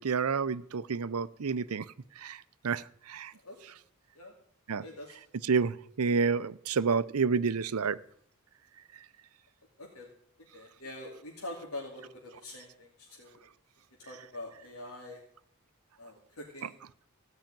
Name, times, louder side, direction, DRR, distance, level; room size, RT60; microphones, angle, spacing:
voice 1, 0.0-1.9 2.2-3.3 4.7-4.8 5.4-8.0, right 5 dB, 80° right, 0.6 m, -29 dB
voice 2, 3.3-3.8 4.1-4.3 4.8-5.3 9.8-10.1 10.5-13.5 14.0-15.2 16.0-16.8, left 1 dB, 80° left, 2.7 m, -45 dB
15.5 x 5.8 x 9.0 m
head